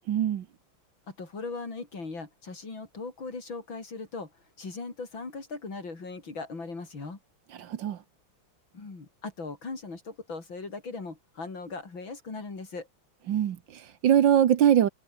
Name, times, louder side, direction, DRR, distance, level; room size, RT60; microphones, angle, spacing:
voice 1, 0.1-0.4 7.6-8.0 13.3-14.9, right 10 dB, 65° right, 1.7 m, -23 dB
voice 2, 1.1-4.3 4.6-7.2 8.7-12.9, left 3 dB, 65° left, 5.3 m, -39 dB
omnidirectional pair, 2.3 m